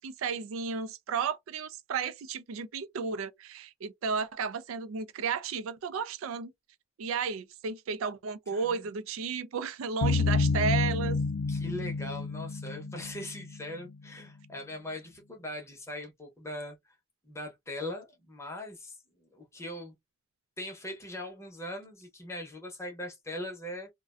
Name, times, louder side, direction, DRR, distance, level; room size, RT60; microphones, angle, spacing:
voice 1, 0.0-6.5 7.0-11.2, right 5 dB, 80° right, 0.4 m, -33 dB
voice 2, 8.5-8.9 11.5-16.9 17.2-19.9 20.6-23.9, left 1 dB, 15° left, 0.7 m, -40 dB
sound 1, 10.0-13.7, left 4 dB, 75° left, 0.3 m, -29 dB
2.4 x 2.2 x 2.3 m
head